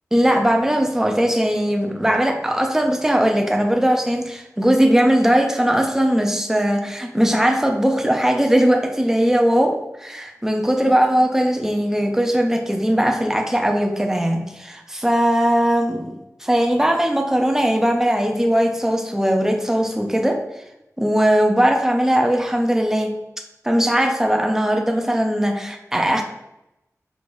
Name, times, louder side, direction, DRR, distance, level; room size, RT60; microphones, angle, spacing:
voice 1, 0.1-20.4 21.0-23.1 23.6-26.2, equal, 10° right, 3 dB, 0.6 m, -19 dB
4.5 x 3.5 x 2.6 m, 0.86 s
wide cardioid pair, 85°, 6 cm